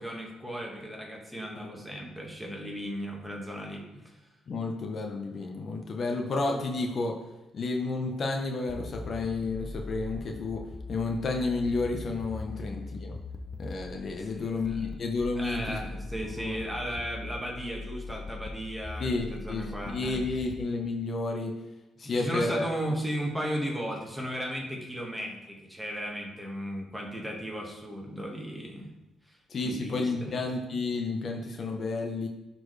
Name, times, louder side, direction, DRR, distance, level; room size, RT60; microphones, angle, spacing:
voice 1, 0.0-3.8 12.5-12.6 14.2-14.4 14.7-14.8 15.3-20.2 22.0-28.9 29.3-30.3, equal, 5° right, -1 dB, 1.7 m, -36 dB
voice 2, 4.5-7.1 7.5-10.6 10.9-13.2 13.6-15.8 16.4-16.6 19.0-21.5 22.0-22.7 29.5-32.3, left 3 dB, 50° left, 2 dB, 1.0 m, -31 dB
sound 1, 8.7-20.6, left 3 dB, 25° left, 0.6 m, -41 dB
11.0 x 4.4 x 3.3 m, 1.0 s
cardioid pair, 90°, 0 cm